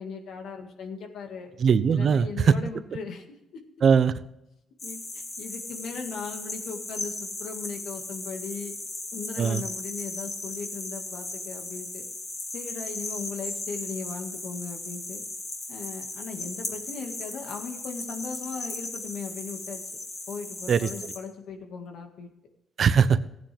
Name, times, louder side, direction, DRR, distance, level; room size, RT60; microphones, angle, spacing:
voice 1, 0.0-1.5 1.9-3.3 3.5-3.6 4.8-8.8 9.1-12.1 12.5-15.2 15.7-19.8 20.3-22.3, left 5 dB, 75° left, 4 dB, 2.0 m, -38 dB
voice 2, 1.6-2.5 3.8-4.1 9.4-9.6 20.7-20.9 22.8-23.2, right 6 dB, 55° right, 13 dB, 0.8 m, -20 dB
sound 1, 4.8-21.2, left 2 dB, 40° left, 3.2 m, -37 dB
15.5 x 9.4 x 3.5 m, 0.86 s
cardioid pair, 90°, 0 cm